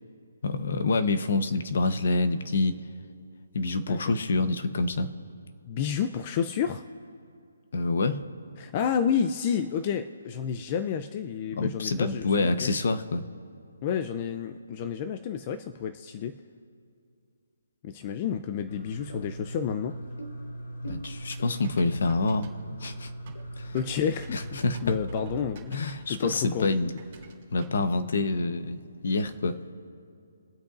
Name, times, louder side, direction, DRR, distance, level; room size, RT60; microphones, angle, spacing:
voice 1, 0.4-2.8 3.5-5.1 7.7-8.2 11.6-13.2 20.8-22.5 22.8-23.1 23.6-23.7 24.3-24.9 25.7-26.9 27.5-29.6, left 3 dB, 55° left, 10 dB, 0.9 m, -27 dB
voice 2, 5.7-6.8 8.6-12.7 13.8-16.4 17.8-20.0 23.7-25.8 26.1-26.9, left 7 dB, 25° left, 9 dB, 0.4 m, -30 dB
sound 1, 18.7-25.4, right 1 dB, 85° left, 2.2 m, -39 dB
Typing, 20.8-27.9, right 7 dB, 30° right, 2.1 m, -53 dB
23.0 x 8.5 x 2.5 m, 2.5 s
hypercardioid pair, 175°, 0 cm